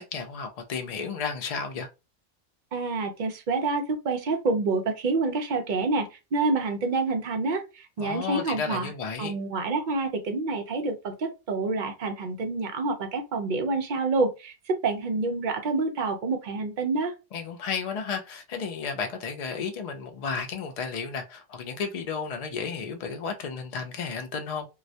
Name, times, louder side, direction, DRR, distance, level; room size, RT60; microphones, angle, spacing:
voice 1, 0.0-1.9 8.0-9.4 17.3-24.7, left 5 dB, 70° left, 0.3 m, -33 dB
voice 2, 2.7-8.9 9.2-17.1, right 3 dB, 60° right, 0.5 m, -28 dB
2.3 x 2.1 x 2.7 m
omnidirectional pair, 1.2 m